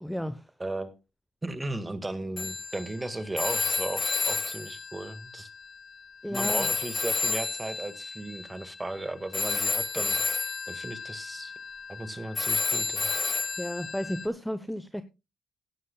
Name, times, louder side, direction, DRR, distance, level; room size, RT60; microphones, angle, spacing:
voice 1, 0.0-0.5 6.2-6.7 13.6-15.0, equal, ahead, 0.8 m, -33 dB
voice 2, 0.6-1.0 1.4-5.5 6.3-10.2 10.7-11.5 11.9-13.1, right 2 dB, 15° right, 1.7 m, -36 dB
Telephone, 2.4-6.0 6.3-14.3, left 4 dB, 30° left, 1.5 m, -31 dB
16.5 x 11.0 x 2.3 m
cardioid pair, 90°, 0 cm